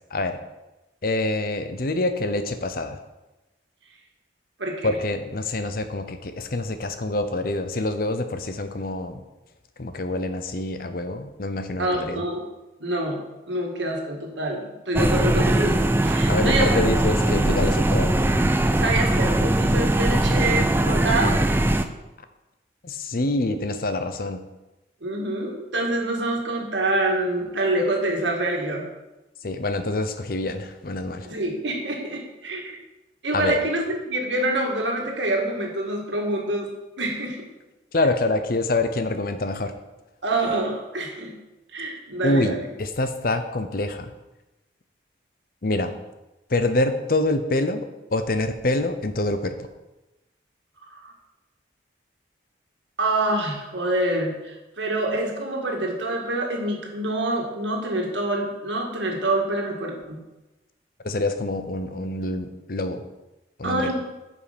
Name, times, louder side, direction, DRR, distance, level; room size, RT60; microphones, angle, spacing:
voice 1, 1.0-3.0 4.8-9.2 9.8-12.2 16.2-18.2 22.8-24.4 29.4-31.3 33.3-33.6 37.9-39.7 42.2-44.1 45.6-45.9 46.5-49.5 61.0-63.0 63.6-63.9, left 2 dB, 50° left, 9 dB, 0.7 m, -26 dB
voice 2, 4.6-4.9 11.8-12.5 12.8-16.8 18.8-21.4 25.0-28.9 31.2-32.8 33.2-37.5 40.2-41.3 41.7-42.6 50.9-51.1 53.0-60.2 63.6-63.9, right 1 dB, 75° right, 1 dB, 1.8 m, -26 dB
sound 1, 14.9-21.8, right 1 dB, 10° right, 0.3 m, -21 dB
9.7 x 5.3 x 5.1 m, 1.0 s
head